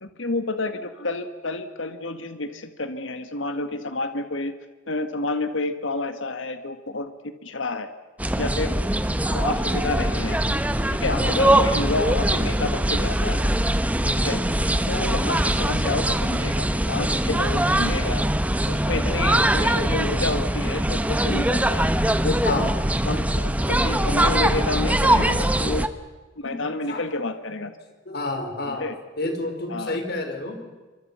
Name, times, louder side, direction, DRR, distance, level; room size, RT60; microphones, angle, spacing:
voice 1, 0.0-4.5 4.9-7.9 8.4-8.8 9.3-10.4 10.9-13.5 14.2-14.4 14.9-18.2 18.7-21.9 22.2-22.7 23.1-25.9 26.4-27.7 28.7-28.9 29.7-30.0, left 2 dB, 75° left, 9 dB, 1.9 m, -29 dB
sound 1, 8.2-25.9, right 1 dB, 5° right, 1.1 m, -22 dB
voice 2, 14.0-14.4 15.1-15.4 22.4-22.7 26.4-27.0 28.0-28.9 29.2-30.6, left 2 dB, 55° left, 4 dB, 5.1 m, -30 dB
28.0 x 25.0 x 5.8 m, 1.3 s
head